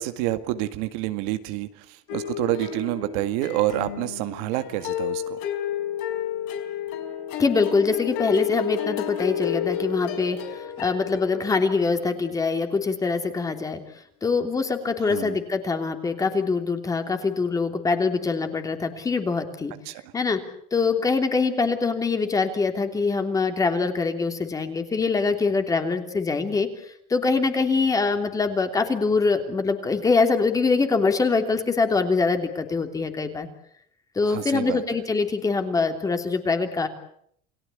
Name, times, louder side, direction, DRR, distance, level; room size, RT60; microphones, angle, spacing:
voice 1, 0.0-5.4 15.0-15.4 19.9-20.0 34.2-34.8, right 15 dB, 80° right, 9 dB, 2.0 m, -28 dB
sound 1, 2.1-12.2, left 10 dB, 80° left, 4.5 m, -31 dB
voice 2, 7.4-10.4 10.8-13.8 14.2-19.7 20.1-20.4 20.7-26.7 27.1-33.5 34.1-36.9, left 4 dB, 20° left, 6 dB, 3.1 m, -24 dB
29.0 x 19.0 x 8.5 m, 0.70 s
cardioid pair, 140°, 19 cm